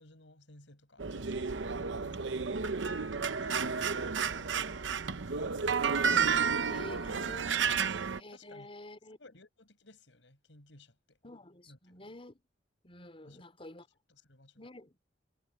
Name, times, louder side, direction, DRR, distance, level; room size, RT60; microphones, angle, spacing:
voice 1, 0.0-1.6 2.0-2.3 3.1-5.6 6.2-7.2 7.6-7.7 8.3-8.7 9.2-11.2 11.7-12.1 13.2-13.4 14.1-14.6, left 2 dB, 85° left, 5.8 m, -56 dB
sound 1, 1.0-8.2, right 6 dB, 90° right, 0.8 m, -31 dB
voice 2, 6.7-7.6 8.2-9.2 11.2-12.4 12.8-13.9 14.6-15.0, left 1 dB, 30° left, 4.7 m, -49 dB
head